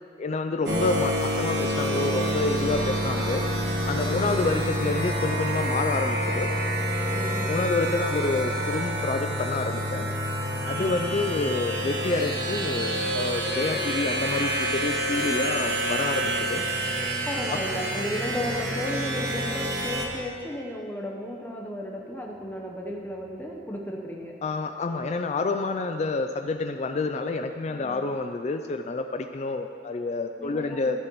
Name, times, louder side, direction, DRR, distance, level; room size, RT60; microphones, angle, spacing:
voice 1, 0.2-3.4 3.9-6.5 7.5-10.1 10.7-16.6 17.5-17.6 24.4-31.0, left 3 dB, 40° left, 7 dB, 0.3 m, -28 dB
sound 1, 0.6-20.0, equal, 65° right, 1.4 m, -28 dB
voice 2, 4.0-4.6 7.1-7.8 10.7-11.0 17.3-24.4 27.7-28.0 30.4-30.9, left 1 dB, 10° left, 0 dB, 0.9 m, -34 dB
13.5 x 11.0 x 3.1 m, 2.3 s
head